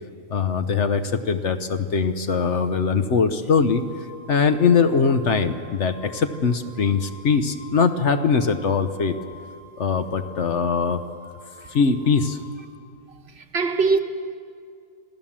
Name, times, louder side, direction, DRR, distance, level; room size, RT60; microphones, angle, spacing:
voice 1, 0.3-3.8 4.3-9.1 9.8-11.0 11.7-12.4, left 5 dB, 55° left, 1.1 m, -21 dB
Wind instrument woodwind instrument, 3.5-12.5, left 1 dB, 75° left, 5.3 m, -47 dB
voice 2, 13.1-14.0, right 4 dB, 50° right, 1.2 m, -23 dB
26.5 x 16.0 x 7.4 m
omnidirectional pair, 1.5 m